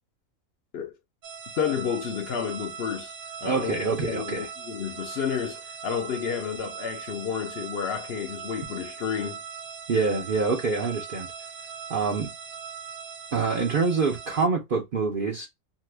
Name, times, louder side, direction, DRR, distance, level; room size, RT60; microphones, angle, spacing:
sound 1, 1.2-14.5, right 7 dB, 80° right, 1.0 m, -40 dB
voice 1, 1.6-3.1 3.4-3.8 4.1-9.4, left 7 dB, 60° left, 0.8 m, -31 dB
voice 2, 3.4-4.5 9.9-11.3 11.9-12.3 13.3-15.5, right 4 dB, 50° right, 0.7 m, -26 dB
2.9 x 2.4 x 3.2 m
omnidirectional pair, 1.4 m